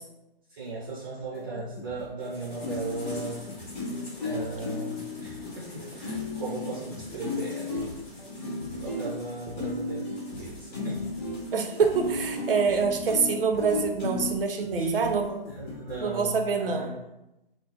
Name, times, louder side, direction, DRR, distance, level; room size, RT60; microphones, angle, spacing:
voice 1, 0.5-3.4 4.2-7.9 8.7-11.1 12.3-12.4 14.8-15.1 15.5-17.0, right 3 dB, 20° right, -7 dB, 0.6 m, -37 dB
sound 1, 1.2-16.0, left 3 dB, 70° left, 0.5 m, -46 dB
sound 2, 2.2-12.9, left 1 dB, 15° left, 0.7 m, -47 dB
sound 3, 2.6-14.4 15.0-15.1 15.7-15.8, left 3 dB, 45° left, 1.2 m, -34 dB
voice 2, 11.5-15.4 16.0-16.9, right 5 dB, 65° right, 5 dB, 0.6 m, -26 dB
3.6 x 2.0 x 2.9 m, 0.91 s
figure-of-eight pair, 145°, 30 cm